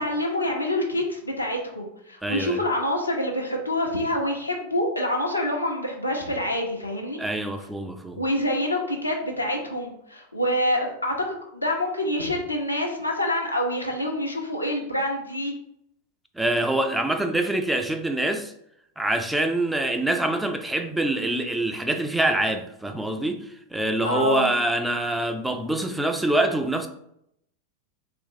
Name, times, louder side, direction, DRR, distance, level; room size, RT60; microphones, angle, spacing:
voice 1, 0.0-7.2 8.2-15.5 24.0-24.5, left 1 dB, 85° left, 0.7 m, -26 dB
voice 2, 2.2-2.6 7.2-8.2 16.4-18.5 19.0-26.9, right 1 dB, 5° right, 0.3 m, -25 dB
3.4 x 2.9 x 2.6 m
figure-of-eight pair, 90°, 0 cm